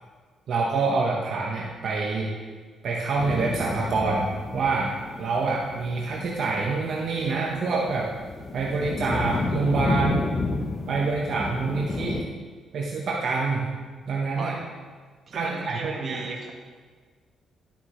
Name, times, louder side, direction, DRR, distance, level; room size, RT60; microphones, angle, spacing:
voice 1, 0.5-2.3 2.8-4.9 5.2-8.1 8.5-10.2 10.9-12.2 12.7-13.7 14.1-14.6 15.3-16.2, right 4 dB, 60° right, -3 dB, 1.2 m, -26 dB
sound 1, 3.2-12.2, left 4 dB, 45° left, 0.9 m, -31 dB
voice 2, 15.3-16.5, right 3 dB, 45° right, 0 dB, 1.6 m, -36 dB
11.5 x 7.1 x 3.2 m, 1.5 s
cardioid pair, 90°, 0 cm